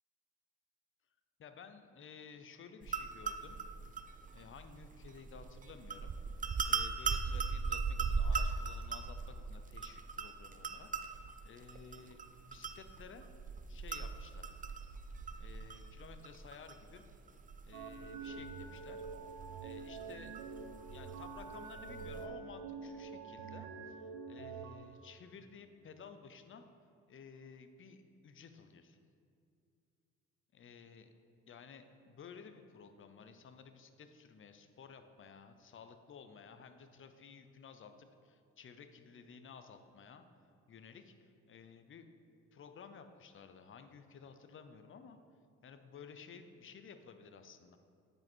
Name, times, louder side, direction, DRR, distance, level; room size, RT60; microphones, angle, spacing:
voice 1, 1.4-3.6 3.9-4.0 4.3-10.9 11.1-12.2 12.4-13.3 13.7-14.5 15.4-17.0 17.6-19.0 19.6-20.3 20.9-26.6 27.1-29.0 30.5-31.1 31.5-40.2 40.7-42.1 42.5-45.2 45.6-47.8, left 6 dB, 45° left, 8 dB, 0.7 m, -54 dB
sound 1, 2.8-22.3, right 5 dB, 25° right, 0.5 m, -40 dB
sound 2, 17.7-24.8, right 5 dB, 90° right, 0.8 m, -46 dB
9.2 x 5.4 x 4.5 m, 2.4 s
cardioid pair, 90°, 30 cm